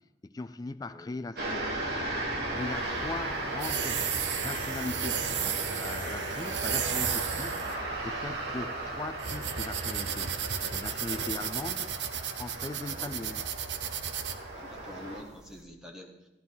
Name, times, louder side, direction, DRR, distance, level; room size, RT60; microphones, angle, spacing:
voice 1, 0.2-1.8 2.5-4.1 4.4-10.4 10.7-11.9 12.3-13.5, left 2 dB, 20° left, 0.3 m, -39 dB
sound 1, 1.3-15.2, right 2 dB, 60° right, 2.5 m, -36 dB
sound 2, 2.6-15.6, right 8 dB, 75° right, 0.8 m, -34 dB
sound 3, 3.5-12.0, equal, 40° right, 4.4 m, -57 dB
voice 2, 12.8-13.3 14.5-16.3, left 1 dB, 5° right, 1.5 m, -47 dB
15.0 x 11.5 x 4.0 m
head